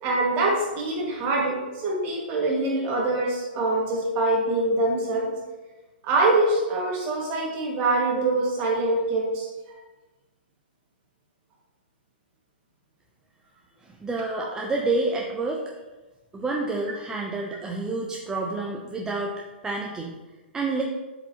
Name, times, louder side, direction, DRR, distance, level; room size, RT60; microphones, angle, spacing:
voice 1, 0.0-1.6 1.8-5.3 6.0-9.8 14.2-14.3, right 2 dB, 30° right, -1 dB, 1.7 m, -24 dB
voice 2, 14.0-15.6 16.3-19.3 19.6-20.2 20.5-20.8, right 3 dB, 10° right, -1 dB, 0.5 m, -28 dB
7.6 x 4.9 x 2.8 m, 1.2 s
hypercardioid pair, 130°, 6 cm